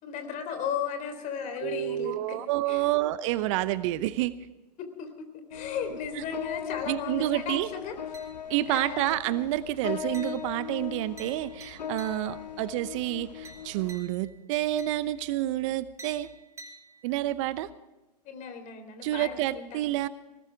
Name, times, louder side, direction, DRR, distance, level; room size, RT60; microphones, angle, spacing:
voice 1, 0.0-2.4 2.7-2.9 4.8-8.3 8.7-9.2 18.2-19.8, left 7 dB, 35° left, 8 dB, 3.6 m, -36 dB
voice 2, 1.6-4.4 6.1-6.2 6.9-7.7 8.5-16.3 17.0-17.7 19.0-20.1, right 15 dB, 50° right, 16 dB, 0.7 m, -29 dB
sound 1, 5.5-14.0, left 8 dB, 80° left, 0.9 m, -39 dB
sound 2, 8.1-8.7 9.1-9.5 10.1-12.6 13.4-15.4 16.0-17.4, right 3 dB, 15° right, 3.7 m, -51 dB
20.0 x 18.0 x 3.5 m, 1.1 s
figure-of-eight pair, 100°, 21 cm